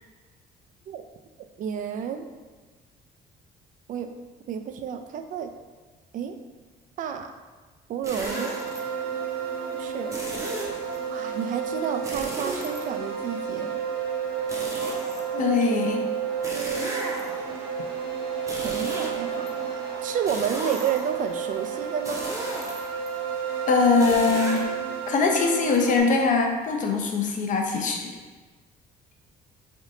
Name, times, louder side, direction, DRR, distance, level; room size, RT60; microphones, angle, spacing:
voice 1, 1.6-2.2 3.9-4.1 4.5-5.5 6.1-6.4 7.0-7.3 7.9-8.5 9.7-10.1 11.1-13.8 15.3-15.5 16.5-17.0 18.6-19.7 20.0-22.2, right 8 dB, 50° right, 7 dB, 0.4 m, -31 dB
sound 1, 8.0-8.8 10.1-11.0 12.0-13.3 14.5-15.6 16.4-17.6 18.4-19.5 20.2-21.2 22.0-23.1 24.0-24.6, right 1 dB, 20° right, 0.7 m, -35 dB
sound 2, 8.3-26.0, right 7 dB, 90° right, 0.9 m, -31 dB
voice 2, 15.4-16.0 23.7-24.6 25.1-28.1, left 4 dB, 50° left, 2 dB, 0.6 m, -22 dB
3.5 x 2.6 x 3.7 m, 1.4 s
cardioid pair, 110°, 17 cm